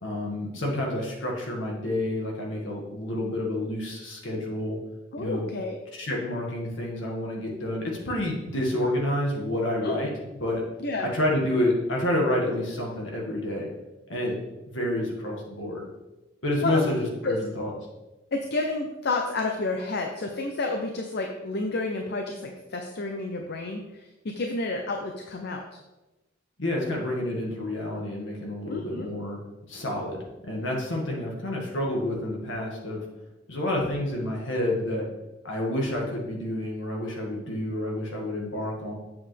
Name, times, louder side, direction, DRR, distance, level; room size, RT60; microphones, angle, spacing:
voice 1, 0.0-4.8 5.2-5.5 5.9-10.1 10.4-10.6 11.0-13.7 14.1-14.4 14.7-15.8 16.4-17.7 26.6-29.4 29.7-33.0 33.5-35.0 35.4-38.9, left 1 dB, 75° left, -1 dB, 1.9 m, -29 dB
voice 2, 5.1-5.8 9.8-10.0 10.8-11.1 16.6-16.9 17.2-17.4 18.3-25.6 28.7-29.1, left 2 dB, 60° left, 3 dB, 0.7 m, -30 dB
7.5 x 7.0 x 3.4 m, 1.0 s
head